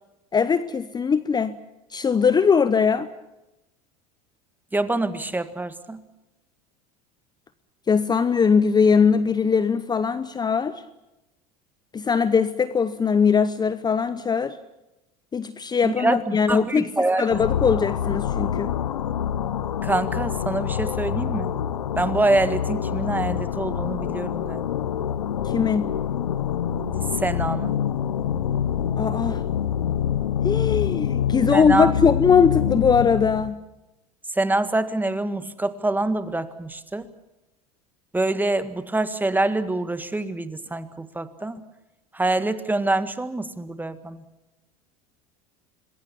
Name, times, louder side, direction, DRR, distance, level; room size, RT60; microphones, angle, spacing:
voice 1, 0.3-1.6 1.9-3.1 7.9-10.8 11.9-14.6 15.3-16.9 17.2-18.7 25.4-25.9 29.0-29.4 30.4-33.6, left 6 dB, 20° left, 14 dB, 0.9 m, -21 dB
voice 2, 4.7-6.0 15.8-17.3 19.8-21.5 22.0-24.7 27.2-27.7 31.5-31.9 34.4-37.0 38.1-41.6 42.1-44.2, right 2 dB, 10° right, 11 dB, 1.8 m, -25 dB
sound 1, 17.3-33.5, left 9 dB, 85° left, 1.0 m, -26 dB
26.0 x 21.5 x 7.1 m, 0.99 s
hypercardioid pair, 85°, 19 cm